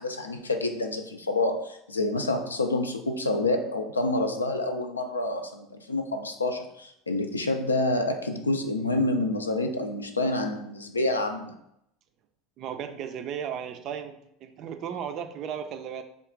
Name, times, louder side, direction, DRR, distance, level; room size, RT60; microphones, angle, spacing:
voice 1, 0.0-11.5, left 2 dB, 80° left, 5 dB, 0.4 m, -28 dB
voice 2, 12.6-16.0, right 8 dB, 45° right, 7 dB, 0.4 m, -35 dB
3.5 x 2.3 x 3.7 m, 0.77 s
figure-of-eight pair, 70°, 0 cm